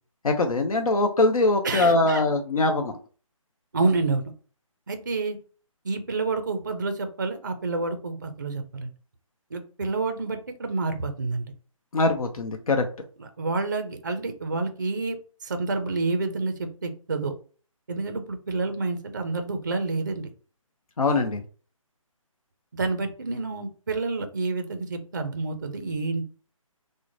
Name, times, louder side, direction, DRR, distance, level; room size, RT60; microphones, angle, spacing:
voice 1, 0.2-2.9 11.9-12.9 21.0-21.4, left 2 dB, 85° left, 4 dB, 0.7 m, -22 dB
voice 2, 1.6-2.2 3.7-4.2 4.9-5.4 5.8-8.9 9.5-11.5 13.2-15.2 15.4-17.3 17.9-20.3 22.7-26.2, right 3 dB, 35° right, 8 dB, 0.4 m, -28 dB
3.1 x 2.0 x 3.8 m, 0.39 s
hypercardioid pair, 175°, 18 cm